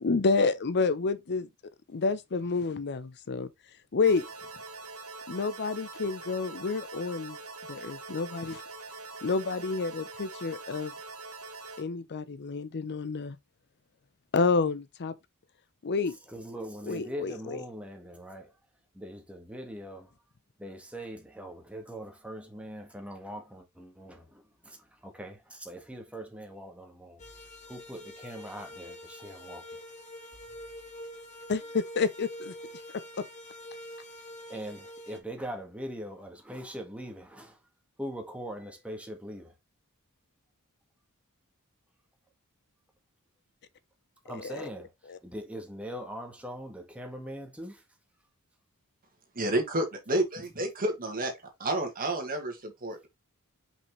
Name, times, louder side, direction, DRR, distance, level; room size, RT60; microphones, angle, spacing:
voice 1, 0.0-1.5 1.9-3.5 3.9-4.3 5.3-7.4 7.7-8.6 9.2-10.9 11.8-13.4 14.3-15.1 15.8-16.1 16.9-17.6 31.5-32.5 44.3-44.7 45.1-45.2, left 4 dB, 50° left, 0.6 m, -29 dB
sound 1, 4.1-11.8, right 3 dB, 80° right, 1.8 m, -44 dB
voice 2, 16.3-18.5 18.9-20.1 20.6-24.8 25.0-27.2 27.7-29.6 34.5-37.6 38.0-39.5 44.2-44.9 45.2-47.8, equal, 5° right, 1.6 m, -41 dB
sound 2, 27.2-35.2, equal, 35° left, 1.7 m, -45 dB
voice 3, 49.3-51.3 51.6-53.1, right 1 dB, 40° right, 1.9 m, -30 dB
5.8 x 5.5 x 3.1 m
head